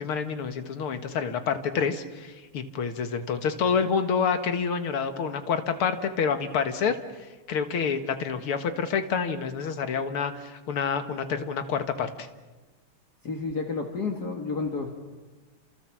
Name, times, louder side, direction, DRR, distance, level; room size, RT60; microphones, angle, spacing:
voice 1, 0.0-7.0 7.5-12.3, left 6 dB, 90° left, 8 dB, 2.4 m, -28 dB
voice 2, 13.2-14.9, left 4 dB, 50° left, 3 dB, 2.5 m, -30 dB
28.5 x 27.0 x 7.5 m, 1.2 s
omnidirectional pair, 2.3 m